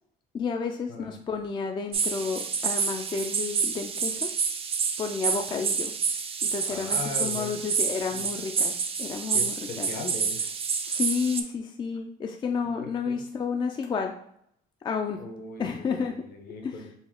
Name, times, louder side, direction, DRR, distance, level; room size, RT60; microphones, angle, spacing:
voice 1, 0.3-4.3 5.0-5.9 6.4-9.9 10.8-14.1 14.8-15.2 15.6-16.2 16.6-16.7, left 5 dB, 30° left, 4 dB, 0.4 m, -31 dB
sound 1, 1.9-11.4, right 6 dB, 35° right, 0.4 m, -28 dB
voice 2, 6.7-7.6 8.1-8.3 9.3-10.6 12.8-13.2 15.2-17.0, left 4 dB, 60° left, 4 dB, 0.9 m, -39 dB
4.1 x 2.3 x 3.6 m, 0.70 s
cardioid pair, 110°, 17 cm